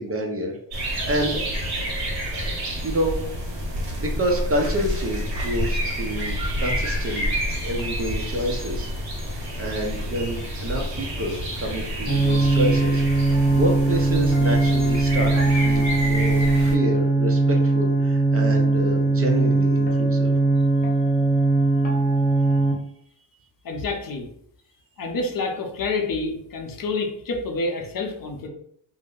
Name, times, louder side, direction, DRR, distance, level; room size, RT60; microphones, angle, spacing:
voice 1, 0.0-1.4 1.8-1.9 2.4-2.6 2.8-3.2 4.0-7.3 7.6-8.9 9.3-20.3, right 1 dB, 30° right, 1 dB, 0.6 m, -28 dB
sound 1, 0.7-16.7, equal, 55° right, 1.5 m, -29 dB
sound 2, 12.1-22.7, right 2 dB, 20° left, 1.0 m, -20 dB
voice 2, 23.6-24.3 25.0-28.5, left 3 dB, 50° left, 2 dB, 0.7 m, -28 dB
2.6 x 2.1 x 3.7 m, 0.69 s
cardioid pair, 95°, 45 cm